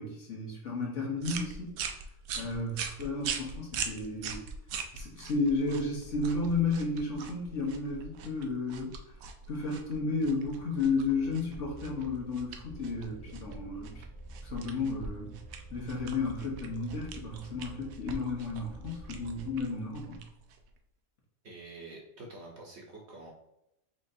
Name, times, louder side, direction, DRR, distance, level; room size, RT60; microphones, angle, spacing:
voice 1, 0.0-1.8 2.3-4.4 4.9-8.9 9.5-14.0 14.4-15.4 15.7-20.2, left 3 dB, 55° left, -2 dB, 1.4 m, -33 dB
sound 1, 1.2-20.8, right 5 dB, 75° right, 1.0 m, -42 dB
sound 2, 10.5-19.6, right 1 dB, 30° left, 0.4 m, -49 dB
voice 2, 21.4-23.3, right 2 dB, 55° right, -1 dB, 1.1 m, -47 dB
4.4 x 3.8 x 2.7 m, 0.83 s
omnidirectional pair, 1.5 m